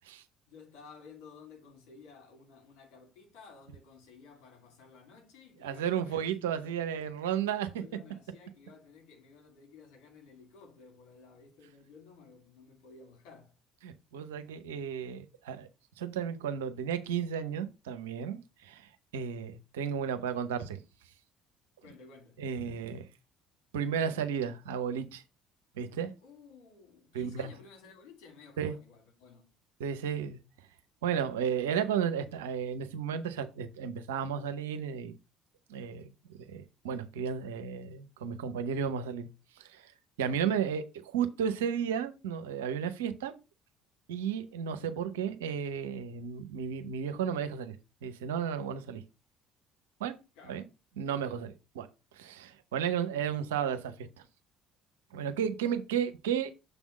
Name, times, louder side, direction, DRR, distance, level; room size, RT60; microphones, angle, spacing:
voice 1, 0.5-6.8 7.7-13.5 21.8-22.4 26.2-29.5 50.3-50.5, left 5 dB, 70° left, 2.6 m, -54 dB
voice 2, 5.6-7.7 13.8-15.7 16.0-20.8 22.4-23.0 23.7-25.2 25.8-26.1 27.1-27.5 28.6-28.7 29.8-30.4 31.0-35.1 35.7-36.1 36.5-39.3 39.6-39.9 40.2-43.3 44.1-47.7 48.0-49.0 50.0-50.1 50.5-50.6 51.0-51.9 52.1-54.2 55.1-56.5, right 8 dB, 80° right, 0.7 m, -33 dB
6.7 x 3.6 x 5.9 m
hypercardioid pair, 55°, 0 cm